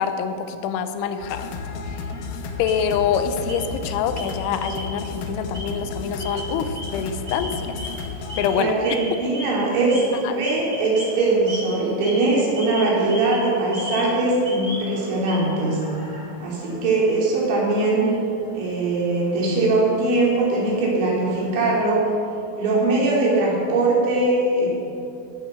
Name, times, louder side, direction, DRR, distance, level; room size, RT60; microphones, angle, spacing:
voice 1, 0.0-1.5 2.6-7.8 8.4-8.8 10.2-10.4, left 7 dB, 90° left, 9 dB, 3.2 m, -25 dB
sound 1, 1.2-8.5, left 4 dB, 70° left, 2.2 m, -33 dB
sound 2, 2.1-3.2 3.5-3.9 4.2-5.1 5.4-21.8, equal, 10° left, 2.7 m, -38 dB
voice 2, 8.5-15.8 16.4-18.1 18.5-22.0 22.6-24.7, right 2 dB, 75° right, -4 dB, 5.2 m, -21 dB
16.0 x 9.4 x 6.7 m, 2.7 s
omnidirectional pair, 5.2 m